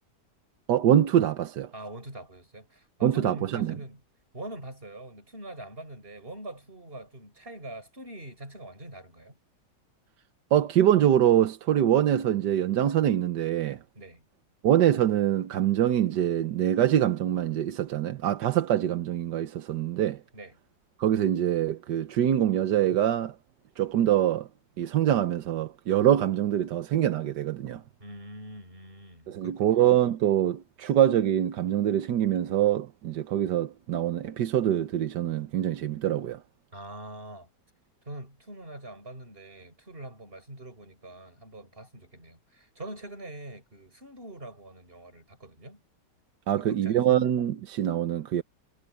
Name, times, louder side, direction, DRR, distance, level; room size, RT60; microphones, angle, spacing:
voice 1, 0.7-1.7 3.0-3.7 10.5-13.8 14.6-20.2 21.0-23.3 23.8-24.5 24.8-27.8 29.3-36.4 46.5-48.4, right 11 dB, 80° right, 1.5 m, -24 dB
voice 2, 1.7-4.0 4.3-9.4 13.9-14.3 20.3-20.5 28.0-29.9 36.7-37.5 38.1-45.8 46.5-47.2, right 1 dB, 30° right, 6.5 m, -43 dB
omnidirectional pair, 1.9 m